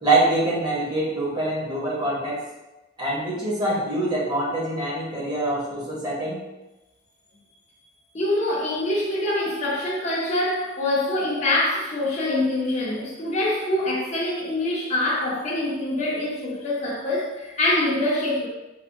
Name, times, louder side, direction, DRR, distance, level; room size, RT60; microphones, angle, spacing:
voice 1, 0.0-2.4 3.0-6.4, right 2 dB, 20° right, -7 dB, 0.9 m, -24 dB
voice 2, 8.1-18.5, left 1 dB, 40° left, -5 dB, 0.5 m, -25 dB
3.4 x 2.1 x 2.5 m, 1.0 s
head